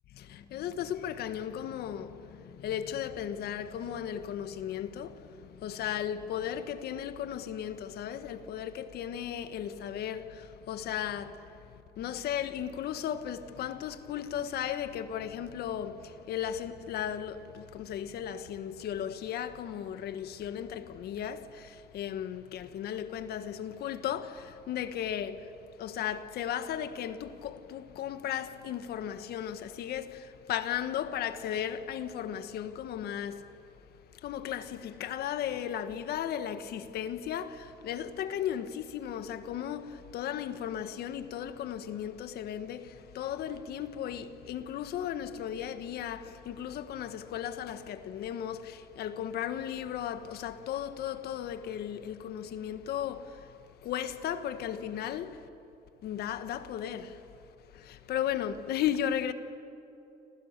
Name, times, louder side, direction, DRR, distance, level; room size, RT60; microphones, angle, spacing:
voice 1, 0.1-33.5 34.1-53.6 53.8-55.4 56.0-57.2 57.7-59.3, left 10 dB, 70° left, 1.6 m, -36 dB
29.5 x 26.5 x 6.8 m
cardioid pair, 110°, 17 cm